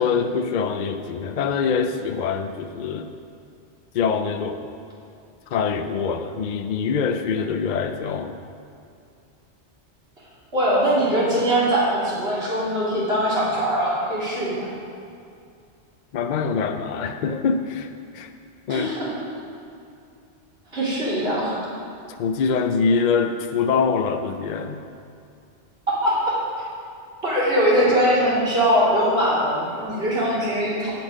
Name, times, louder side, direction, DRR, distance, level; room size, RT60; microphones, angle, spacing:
voice 1, 0.0-3.1 3.9-4.7 5.5-8.4 16.1-18.3 18.7-18.9 22.2-24.8, left 5 dB, 60° left, 7 dB, 0.5 m, -24 dB
voice 2, 10.5-14.6 18.7-19.1 20.7-21.6 25.9-26.4 27.2-30.9, equal, 60° right, -8 dB, 3.1 m, -21 dB
9.9 x 8.5 x 5.1 m, 2.5 s
omnidirectional pair, 1.2 m